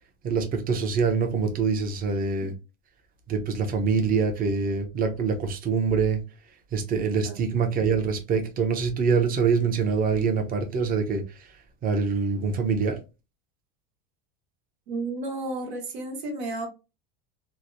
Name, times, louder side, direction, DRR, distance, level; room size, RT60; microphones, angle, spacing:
voice 1, 0.2-2.5 3.3-6.2 6.7-11.5 11.8-13.0, right 5 dB, 30° right, 0.6 m, -25 dB
voice 2, 14.9-16.7, right 2 dB, 80° right, 1.2 m, -32 dB
3.1 x 2.0 x 2.6 m
supercardioid pair, 140°, 32 cm